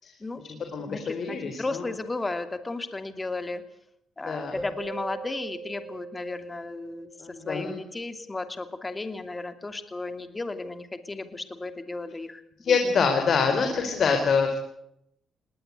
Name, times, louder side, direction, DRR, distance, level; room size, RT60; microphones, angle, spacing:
voice 1, 0.2-3.6 4.2-7.1 7.4-12.8, left 2 dB, 20° left, 9 dB, 2.7 m, -34 dB
voice 2, 0.7-1.8 4.3-4.5 7.2-7.8 12.6-14.6, left 5 dB, 55° left, 5 dB, 4.0 m, -25 dB
Keyboard (musical), 4.6-7.3, right 4 dB, 5° right, 7.0 m, -41 dB
20.5 x 18.5 x 8.3 m, 0.76 s
cardioid pair, 90°, 0 cm